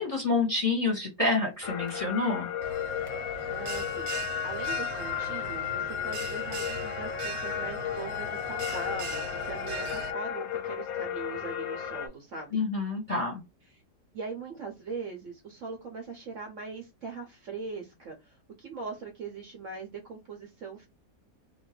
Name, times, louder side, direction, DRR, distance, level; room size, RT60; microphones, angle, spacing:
voice 1, 0.0-2.5 12.5-13.4, left 3 dB, 25° left, -1 dB, 1.0 m, -28 dB
sound 1, 1.6-12.1, left 9 dB, 70° left, 1.0 m, -34 dB
Bell, 2.6-10.1, right 4 dB, 85° right, 1.2 m, -40 dB
voice 2, 3.5-12.6 13.7-13.8 14.1-20.9, right 4 dB, 60° right, 2 dB, 0.8 m, -41 dB
2.8 x 2.6 x 3.0 m, 0.24 s
omnidirectional pair, 1.8 m